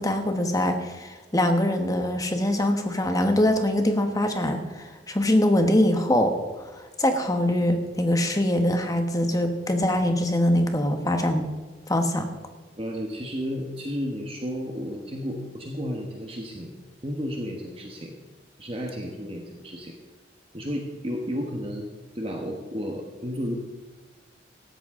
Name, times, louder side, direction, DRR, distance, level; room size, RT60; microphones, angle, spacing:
voice 1, 0.0-11.5 11.9-12.3, left 1 dB, 20° left, 6 dB, 1.2 m, -23 dB
voice 2, 12.8-16.7 17.0-18.2 18.6-20.0 20.5-21.9 22.1-23.6, equal, 30° right, 1 dB, 1.3 m, -32 dB
17.0 x 13.0 x 3.8 m, 1.2 s
head